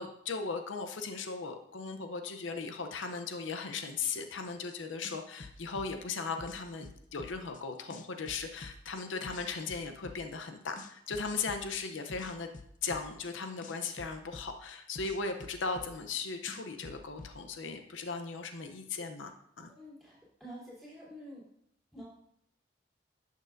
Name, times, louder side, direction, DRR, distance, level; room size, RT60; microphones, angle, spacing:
voice 1, 0.0-12.5 12.8-19.7, left 4 dB, 85° left, 6 dB, 0.7 m, -37 dB
sound 1, 4.7-4.8 5.0-7.6 7.9-10.5 10.8-13.3 13.6-16.2 16.5-17.3, left 3 dB, 45° left, 0.5 m, -48 dB
voice 2, 19.7-21.4 21.9-22.1, equal, ahead, -7 dB, 3.1 m, -48 dB
11.5 x 6.5 x 2.6 m, 0.70 s
head